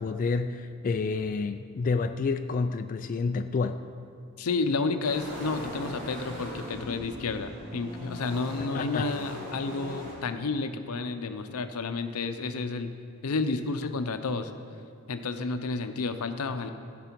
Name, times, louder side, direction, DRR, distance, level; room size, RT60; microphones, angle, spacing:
voice 1, 0.0-3.8 8.7-9.1, left 4 dB, 40° left, 8 dB, 0.3 m, -29 dB
voice 2, 4.4-12.9 13.2-14.5 15.1-16.7, left 3 dB, 85° left, 9 dB, 0.6 m, -31 dB
sound 1, 5.0-10.1, equal, 40° right, 2.9 m, -40 dB
15.0 x 6.1 x 4.5 m, 2.4 s
head